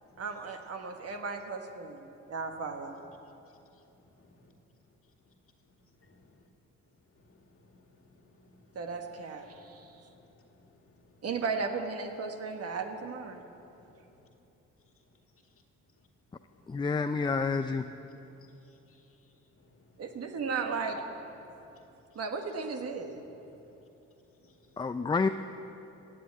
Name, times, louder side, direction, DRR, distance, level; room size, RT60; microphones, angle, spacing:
voice 1, 0.2-3.0 8.7-9.9 11.2-13.5 20.0-21.0 22.1-23.2, right 4 dB, 55° right, 5 dB, 1.5 m, -35 dB
voice 2, 2.6-3.2 4.2-4.5 6.0-6.3 7.2-7.8 8.1-9.0 9.5-9.7 10.0-10.6 10.8-10.9 13.7-13.8 14.0-14.2 16.6-17.0 18.0-18.5 18.9-19.0 19.9-20.1 21.5-21.8 23.1-23.4 24.4-25.0, left 2 dB, 45° left, 3 dB, 2.0 m, -62 dB
voice 3, 16.7-17.9 24.8-25.3, left 4 dB, 15° left, 8 dB, 0.4 m, -28 dB
17.0 x 7.5 x 9.0 m, 3.0 s
cardioid pair, 90°, 30 cm